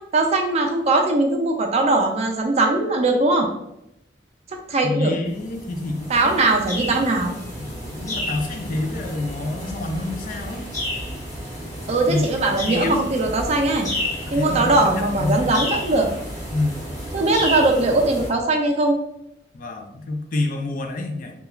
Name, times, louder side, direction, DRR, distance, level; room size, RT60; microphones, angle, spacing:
voice 1, 0.1-3.5 4.7-5.1 6.1-7.4 11.9-13.9 14.3-16.1 17.1-19.0, right 2 dB, 35° right, 3 dB, 0.4 m, -20 dB
voice 2, 4.8-6.4 7.6-10.7 12.1-12.3 12.6-13.0 14.3-15.6 16.5-16.8 19.5-21.3, left 2 dB, 50° left, 3 dB, 0.4 m, -27 dB
sound 1, 5.3-18.3, equal, 20° left, 1.5 m, -31 dB
3.0 x 2.3 x 2.3 m, 0.82 s
head